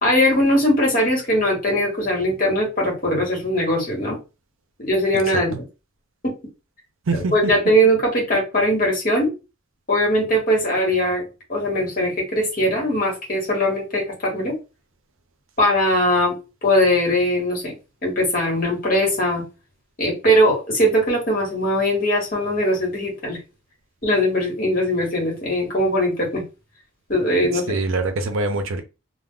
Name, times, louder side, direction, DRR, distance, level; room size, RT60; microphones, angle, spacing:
voice 1, 0.0-4.2 4.8-5.5 6.2-6.4 7.1-9.3 9.9-14.6 15.6-16.4 16.6-17.7 18.0-19.4 20.0-23.4 24.0-26.4 27.1-27.8, equal, 40° left, 1.1 m, -20 dB
voice 2, 7.1-7.5 27.7-28.8, right 3 dB, 75° right, 0.5 m, -23 dB
2.4 x 2.0 x 3.6 m
head